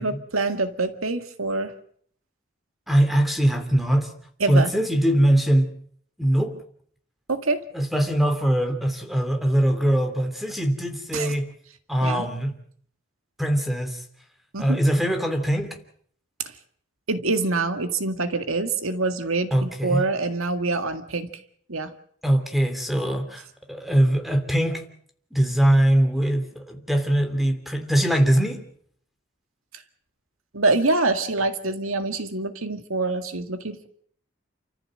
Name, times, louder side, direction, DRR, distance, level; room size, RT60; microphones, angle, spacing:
voice 1, 0.0-1.7 4.4-4.7 7.3-7.6 11.1-11.4 12.0-12.3 14.5-14.8 17.1-21.3 21.7-21.9 30.5-33.9, right 3 dB, 80° right, 1.9 m, -25 dB
voice 2, 2.9-4.1 4.5-5.7 6.2-6.5 7.7-11.5 11.9-12.5 13.4-14.0 14.6-15.8 19.5-20.0 22.2-24.8 25.3-28.6, right 1 dB, ahead, 3.0 m, -22 dB
29.0 x 14.5 x 7.7 m
head